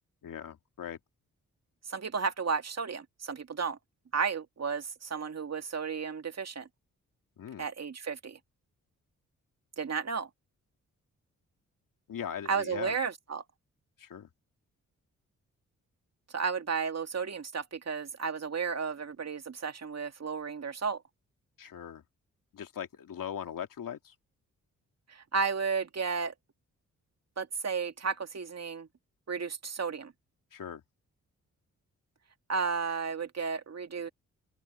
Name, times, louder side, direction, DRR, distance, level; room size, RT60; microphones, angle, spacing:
voice 1, 0.2-1.0 7.4-7.7 12.1-13.0 14.0-14.3 21.6-22.0 22.5-24.1 30.5-30.8, left 9 dB, 70° left, 2.7 m, -40 dB
voice 2, 1.9-3.8 4.1-6.7 7.6-8.4 9.8-10.3 12.5-13.4 16.3-21.0 25.1-26.3 27.4-28.9 29.3-30.1 32.5-34.1, right 5 dB, 50° right, 2.2 m, -33 dB
open air
supercardioid pair, 50°, 33 cm